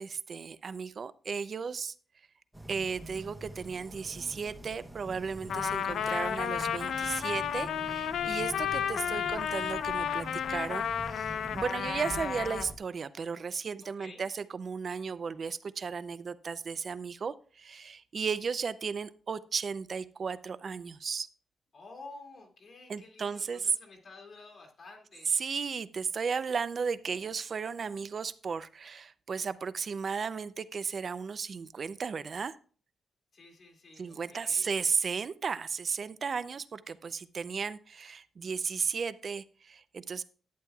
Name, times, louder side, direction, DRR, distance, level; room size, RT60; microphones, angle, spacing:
voice 1, 0.0-1.9 2.7-21.3 22.9-23.8 25.3-32.6 34.0-40.2, right 5 dB, 45° right, 15 dB, 0.4 m, -35 dB
sound 1, 2.5-12.8, right 1 dB, 5° right, 0.9 m, -46 dB
Trumpet, 5.5-12.7, left 8 dB, 80° left, 0.4 m, -32 dB
voice 2, 21.7-25.3 33.3-34.7, left 3 dB, 50° left, 1 dB, 2.3 m, -51 dB
11.0 x 8.8 x 2.3 m, 0.42 s
cardioid pair, 115°, 0 cm